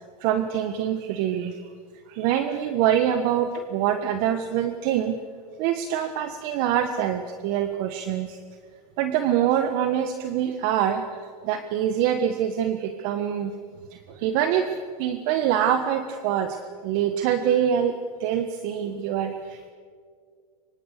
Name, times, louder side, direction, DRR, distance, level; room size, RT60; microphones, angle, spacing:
voice 1, 0.2-1.6 2.1-5.2 5.6-8.4 9.0-11.0 11.4-13.5 13.9-14.7 15.0-19.7, right 9 dB, 50° right, 8 dB, 1.5 m, -25 dB
25.0 x 23.0 x 6.8 m, 2.1 s
hypercardioid pair, 120°, 20 cm